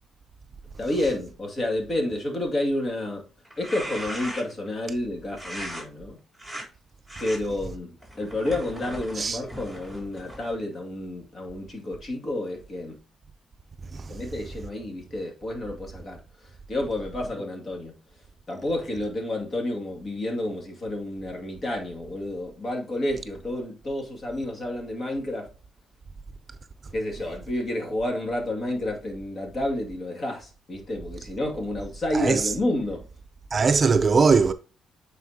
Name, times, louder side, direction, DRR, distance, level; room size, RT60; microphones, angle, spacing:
voice 1, 0.8-3.3 3.6-6.2 7.2-13.0 14.1-17.9 18.5-25.5 26.9-33.0, left 1 dB, 40° left, 2.3 m, -30 dB
sound 1, 3.5-4.7 5.4-5.8 6.4-6.7 7.1-7.4 8.0-10.6, equal, 10° left, 3.7 m, -38 dB
voice 2, 32.1-32.5 33.5-34.5, right 5 dB, 35° right, 0.5 m, -21 dB
9.1 x 4.2 x 2.8 m
cardioid pair, 90°, 0 cm